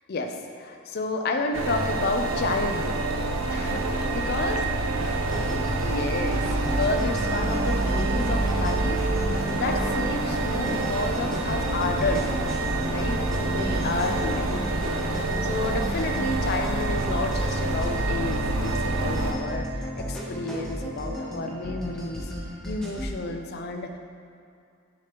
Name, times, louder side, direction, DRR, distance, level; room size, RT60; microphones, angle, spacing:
voice 1, 0.1-3.0 3.5-4.6 5.3-9.0 9.6-12.3 12.9-14.5 15.4-19.7 20.0-22.3 22.7-24.0, left 2 dB, 45° left, 4 dB, 0.4 m, -30 dB
sound 1, 1.5-19.3, right 2 dB, 65° right, 0.5 m, -27 dB
sound 2, 3.6-15.0, equal, 85° right, 0.9 m, -37 dB
sound 3, 5.3-23.1, equal, 5° left, 0.7 m, -33 dB
6.7 x 2.9 x 5.0 m, 2.5 s
head